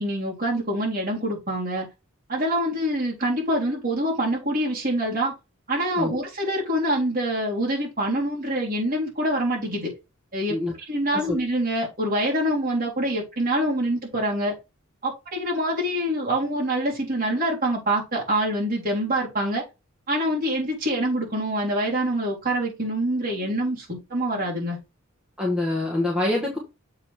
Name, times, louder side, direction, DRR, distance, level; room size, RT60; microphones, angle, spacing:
voice 1, 0.0-1.9 2.3-5.3 5.7-9.9 10.3-14.5 15.0-19.6 20.1-24.8, right 1 dB, 40° right, -4 dB, 3.8 m, -25 dB
voice 2, 25.4-26.6, left 2 dB, 5° right, -3 dB, 1.7 m, -25 dB
7.6 x 4.1 x 4.8 m, 0.26 s
head